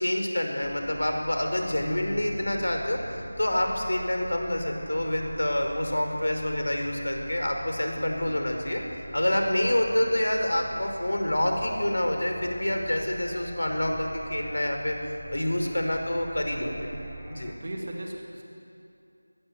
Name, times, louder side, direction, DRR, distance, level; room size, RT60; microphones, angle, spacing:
voice 1, 0.0-3.0 3.4-8.8 9.1-15.0 15.3-16.9 17.3-17.5, left 1 dB, 70° left, 3 dB, 5.1 m, -27 dB
sound 1, 0.6-17.5, right 1 dB, ahead, 1.1 m, -44 dB
voice 2, 7.9-8.5 16.6-17.1 17.6-18.4, right 1 dB, 25° right, 0 dB, 2.4 m, -39 dB
24.5 x 19.5 x 8.2 m, 2.6 s
figure-of-eight pair, 180°, 0 cm